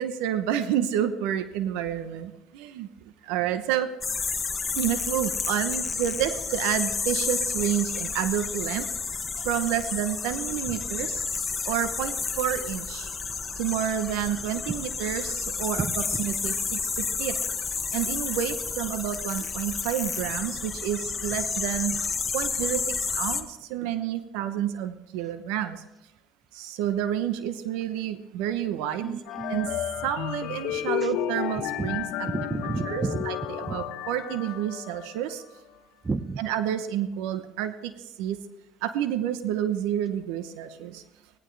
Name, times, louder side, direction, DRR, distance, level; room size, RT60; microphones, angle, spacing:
voice 1, 0.0-2.9 3.2-3.9 4.8-8.9 9.4-11.2 11.6-13.1 13.6-15.9 16.2-17.4 17.7-22.0 22.3-25.8 26.5-29.2 29.5-29.7 30.0-32.3 32.9-35.4 36.4-37.9 38.2-38.4 38.8-41.0, right 10 dB, 80° right, 11 dB, 0.9 m, -29 dB
sound 1, 4.0-23.4, left 5 dB, 30° left, 1.3 m, -31 dB
voice 2, 15.8-16.2 29.0-29.8 30.7-31.1 31.8-31.9 32.2-33.3 33.6-33.8 36.0-36.4, right 4 dB, 30° right, 13 dB, 0.9 m, -32 dB
sound 2, 29.3-35.3, left 12 dB, 75° left, 1.0 m, -32 dB
17.5 x 15.0 x 3.3 m, 0.97 s
supercardioid pair, 75°, 0 cm